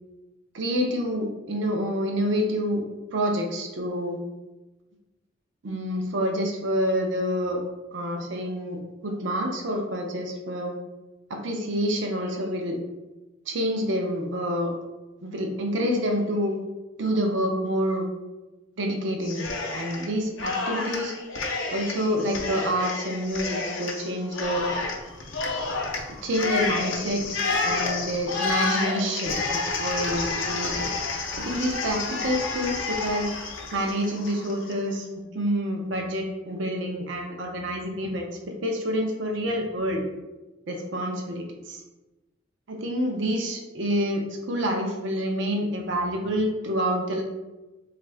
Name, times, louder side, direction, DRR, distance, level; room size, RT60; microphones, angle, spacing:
voice 1, 0.5-2.8 3.1-4.2 5.6-7.6 7.9-10.7 11.3-12.8 13.5-14.7 15.2-16.6 17.0-18.1 18.8-21.1 21.7-24.7 26.2-27.2 27.6-30.9 31.4-33.3 33.7-40.0 40.7-41.8 42.7-47.2, equal, 65° right, 2 dB, 0.5 m, -27 dB
Cheering, 19.2-20.1 20.4-34.8, left 3 dB, 75° left, 0.6 m, -30 dB
3.3 x 2.4 x 3.2 m, 1.1 s
head